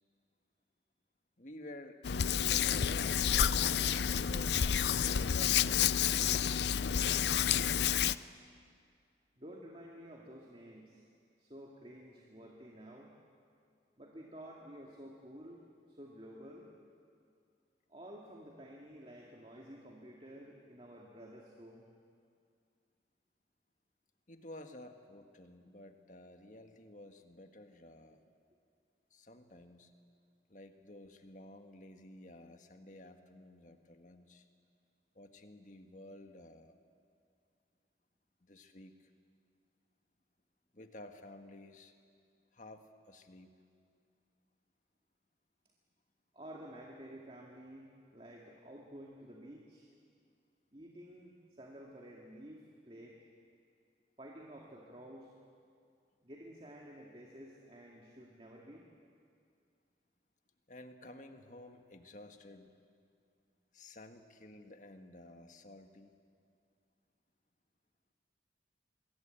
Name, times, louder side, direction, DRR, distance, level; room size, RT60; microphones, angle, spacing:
voice 1, 1.4-2.0 2.3-4.6 5.1-6.1 24.3-28.2 29.1-29.9 30.5-34.5 35.1-36.8 38.4-39.1 40.7-41.9 42.5-43.5 60.7-62.7 63.7-66.2, left 1 dB, 45° left, 6 dB, 1.7 m, -52 dB
Hands, 2.0-8.1, left 8 dB, 70° left, 0.5 m, -30 dB
voice 2, 9.4-11.0 11.4-13.1 14.0-15.6 15.9-16.7 17.9-21.8 46.3-49.9 50.7-53.2 54.2-55.3 56.2-58.8, equal, 30° right, -2 dB, 2.3 m, -51 dB
25.5 x 21.5 x 8.9 m, 2.3 s
head